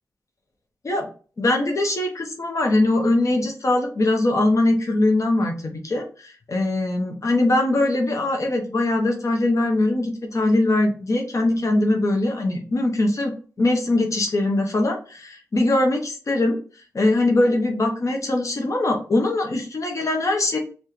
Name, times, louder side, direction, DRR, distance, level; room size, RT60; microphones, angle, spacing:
voice 1, 1.4-16.6 16.9-20.6, left 2 dB, 55° left, 2 dB, 0.8 m, -21 dB
4.7 x 2.4 x 3.1 m, 0.38 s
cardioid pair, 65°, 6 cm